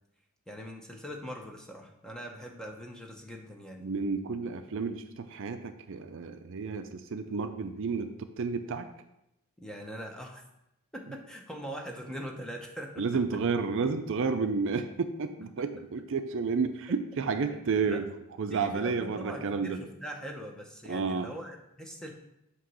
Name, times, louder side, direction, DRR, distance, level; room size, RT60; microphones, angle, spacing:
voice 1, 0.5-3.9 9.6-10.4 10.9-13.0 17.5-17.6 17.9-18.0 18.5-22.1, equal, 5° left, 1 dB, 0.7 m, -42 dB
voice 2, 3.8-8.9 13.0-18.1 18.4-19.8 20.9-21.3, right 4 dB, 60° right, 8 dB, 0.5 m, -31 dB
7.5 x 3.0 x 6.0 m, 0.84 s
head